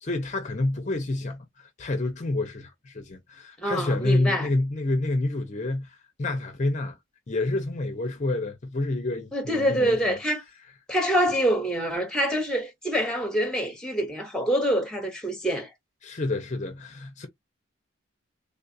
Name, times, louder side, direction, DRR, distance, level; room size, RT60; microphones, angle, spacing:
voice 1, 0.0-7.0 7.3-10.2 16.0-17.3, left 2 dB, 35° left, 0.6 m, -28 dB
voice 2, 3.6-4.5 9.3-10.4 10.9-15.7, equal, 5° left, 1.1 m, -25 dB
3.5 x 2.3 x 2.6 m
head